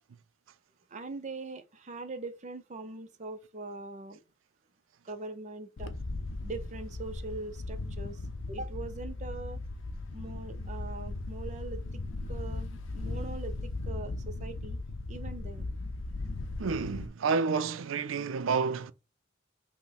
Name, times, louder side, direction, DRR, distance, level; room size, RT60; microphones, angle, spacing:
voice 1, 0.9-4.2 5.0-6.0 6.4-8.2 8.5-9.6 10.1-12.0 12.3-14.8 15.1-15.7, right 3 dB, 40° right, 0.6 m, -42 dB
Wind, 5.8-17.1, left 2 dB, 80° left, 0.6 m, -37 dB
voice 2, 16.6-18.9, right 5 dB, 85° right, 0.5 m, -29 dB
5.7 x 2.1 x 4.1 m
head